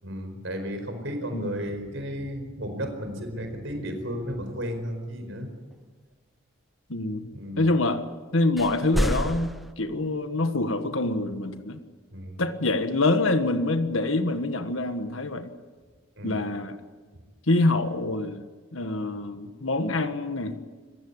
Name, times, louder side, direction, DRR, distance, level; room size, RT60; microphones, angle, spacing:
voice 1, 0.0-5.5 7.3-7.7 12.1-12.4 16.2-16.5, equal, 65° right, 6 dB, 4.7 m, -33 dB
voice 2, 6.9-7.3 7.6-8.0 8.3-11.8 12.4-15.5 16.2-16.8 17.5-18.4 18.7-20.6, left 2 dB, 75° left, 9 dB, 1.5 m, -25 dB
sound 1, 8.6-9.7, equal, ahead, 0.8 m, -27 dB
26.0 x 16.0 x 9.7 m, 1.4 s
head